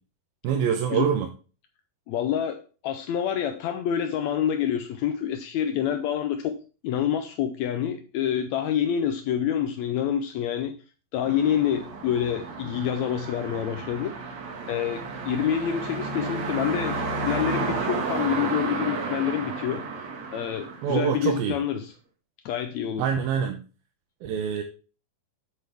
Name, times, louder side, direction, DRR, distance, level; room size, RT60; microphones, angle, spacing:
voice 1, 0.4-1.3 20.8-21.5 23.0-23.6 24.2-24.6, right 8 dB, 80° right, 4 dB, 2.7 m, -25 dB
voice 2, 2.1-6.6 6.8-10.7 11.1-14.1 14.7-19.8 20.3-21.9 22.4-23.1, left 9 dB, 85° left, 7 dB, 1.5 m, -27 dB
sound 1, 11.2-21.5, right 4 dB, 55° right, 2.9 m, -32 dB
8.8 x 8.0 x 3.5 m, 0.35 s
omnidirectional pair, 4.2 m